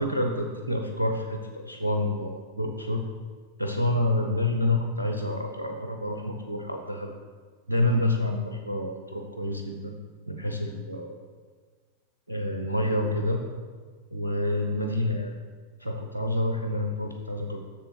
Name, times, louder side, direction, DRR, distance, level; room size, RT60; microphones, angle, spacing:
voice 1, 0.0-3.0 3.6-7.1 7.7-10.0 10.3-11.2 12.3-13.4 14.1-15.3 15.8-17.6, left 1 dB, 80° right, 3 dB, 0.7 m, -28 dB
7.2 x 6.8 x 4.5 m, 1.5 s
figure-of-eight pair, 90°, 0 cm